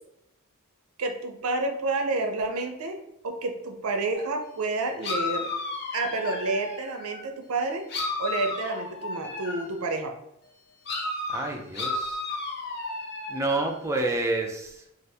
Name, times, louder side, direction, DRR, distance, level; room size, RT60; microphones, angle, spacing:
voice 1, 1.0-3.0 3.2-5.5 5.9-7.8 8.2-10.1, right 3 dB, 80° right, 4 dB, 0.5 m, -29 dB
sound 1, 4.1-4.3 5.0-7.3 7.9-9.8 10.9-13.7, left 3 dB, 50° left, 0.6 m, -33 dB
voice 2, 11.3-12.2 13.3-14.8, right 2 dB, 15° right, 1 dB, 0.4 m, -29 dB
2.7 x 2.4 x 3.3 m, 0.81 s
head